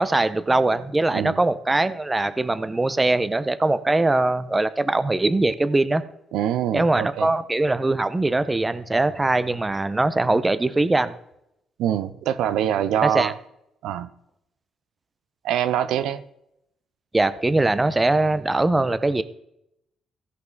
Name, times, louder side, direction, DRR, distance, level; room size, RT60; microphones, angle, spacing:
voice 1, 0.0-6.0 6.7-11.1 13.0-13.3 17.1-19.2, right 2 dB, 20° right, 14 dB, 0.7 m, -21 dB
voice 2, 6.3-7.3 11.8-13.3 13.8-14.1 15.4-16.2, right 10 dB, 85° right, 12 dB, 0.6 m, -24 dB
16.0 x 5.5 x 3.9 m, 0.80 s
cardioid pair, 90°, 0 cm